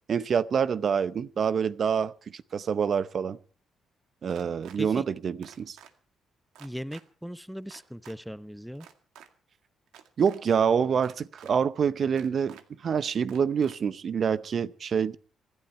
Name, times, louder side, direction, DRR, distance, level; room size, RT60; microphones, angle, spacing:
voice 1, 0.1-3.4 4.2-5.8 10.2-12.6 12.8-15.2, right 7 dB, 50° right, 0.8 m, -26 dB
sound 1, 4.3-4.8 5.4-5.9 6.5-7.0 7.7-8.2 8.8-9.3 9.9-10.4 11.0-11.5 12.2-12.6 13.3-13.8, right 9 dB, 90° right, 2.0 m, -51 dB
voice 2, 6.6-8.9, equal, ahead, 0.8 m, -38 dB
25.0 x 12.0 x 4.4 m
cardioid pair, 90°, 0 cm